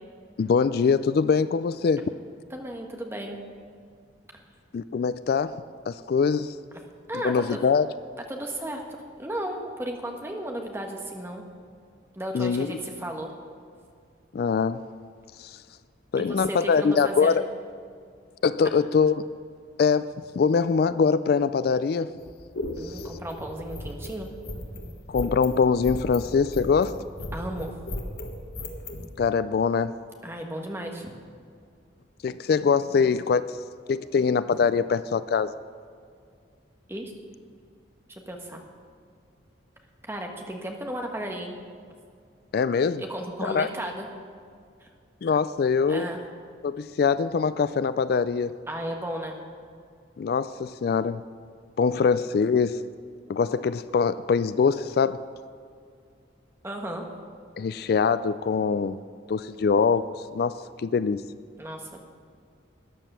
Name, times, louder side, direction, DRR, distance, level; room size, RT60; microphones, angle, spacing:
voice 1, 0.4-2.0 4.7-6.6 7.2-7.9 12.3-12.7 14.3-14.8 15.4-15.6 16.1-17.4 18.4-19.2 19.8-22.1 22.8-23.1 25.1-27.0 29.2-29.9 32.2-33.6 33.9-35.5 42.5-43.0 43.4-43.7 45.2-46.1 46.6-48.6 50.2-51.2 51.8-52.8 53.3-55.2 57.6-59.0 59.3-61.2, left 5 dB, 55° left, 15 dB, 0.3 m, -23 dB
voice 2, 2.5-3.4 7.1-7.6 8.3-8.8 9.2-11.4 12.1-13.3 16.2-17.4 22.8-24.3 27.3-27.7 30.2-31.1 36.9-37.1 38.1-38.6 40.0-41.6 43.0-44.1 44.8-44.9 45.9-46.2 48.7-49.4 56.6-57.0 61.6-62.0, right 1 dB, 15° right, 2 dB, 1.3 m, -34 dB
sound 1, 22.2-29.1, left 1 dB, 85° left, 1.5 m, -36 dB
13.0 x 9.4 x 6.8 m, 2.2 s
head